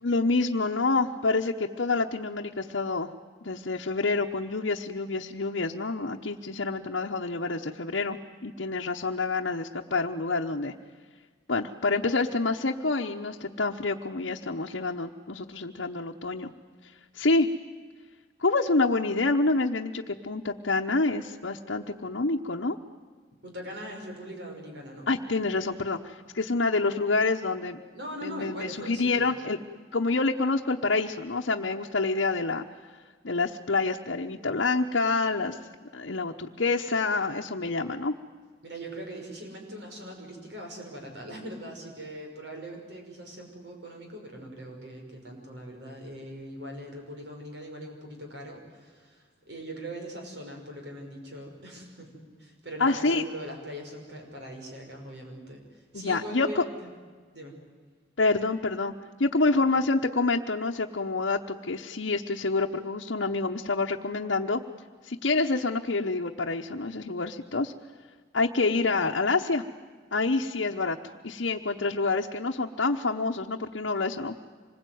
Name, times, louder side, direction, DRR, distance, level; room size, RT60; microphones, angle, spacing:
voice 1, 0.0-3.1 3.4-10.7 11.5-16.5 17.1-17.5 18.4-22.8 25.1-27.8 28.2-29.6 29.9-32.6 33.2-35.6 35.9-38.1 52.8-53.2 55.9-56.6 58.2-58.9 59.2-64.6 65.0-67.7 68.3-69.6 70.1-71.0 71.2-74.4, left 3 dB, 75° left, 0 dB, 1.0 m, -27 dB
voice 2, 23.4-25.1 27.9-29.3 38.6-56.9 57.3-57.5 59.4-59.6, right 1 dB, 65° right, 2 dB, 5.8 m, -41 dB
26.0 x 21.0 x 9.4 m, 1.5 s
head